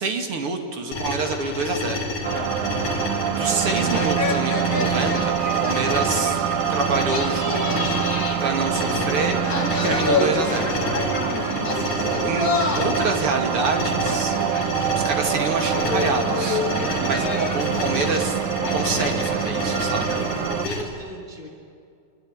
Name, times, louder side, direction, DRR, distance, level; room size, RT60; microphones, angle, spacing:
voice 1, 0.0-2.1 3.3-6.4 6.7-7.9 8.4-9.4 9.7-10.8 11.3-11.5 12.2-14.3 15.0-18.4 18.7-20.1, right 4 dB, 45° right, 4 dB, 3.0 m, -27 dB
sound 1, 0.9-20.8, left 2 dB, 75° left, 5.3 m, -30 dB
sound 2, 2.2-20.8, left 4 dB, 35° left, 1.5 m, -30 dB
sound 3, 2.2-20.7, right 12 dB, 85° right, 2.5 m, -26 dB
voice 2, 20.1-21.5, equal, 15° left, 2 dB, 3.1 m, -36 dB
27.0 x 23.5 x 8.9 m, 2.4 s
omnidirectional pair, 3.9 m